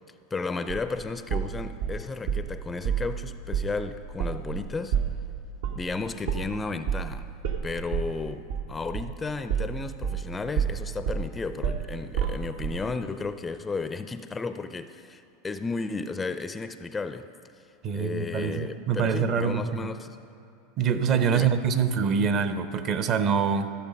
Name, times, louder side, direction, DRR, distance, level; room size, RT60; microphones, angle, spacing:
voice 1, 0.3-5.0 5.7-7.3 7.6-17.3 17.9-20.2 21.3-21.5, left 4 dB, 15° left, 11 dB, 0.4 m, -33 dB
sound 1, 0.7-2.5 2.8-3.1 3.5-3.7 4.0-10.3 10.6-12.8, right 8 dB, 75° right, 1.1 m, -29 dB
voice 2, 17.8-19.9 20.8-23.7, right 6 dB, 45° right, 10 dB, 0.8 m, -25 dB
14.5 x 7.1 x 5.2 m, 2.6 s
hypercardioid pair, 110°, 0 cm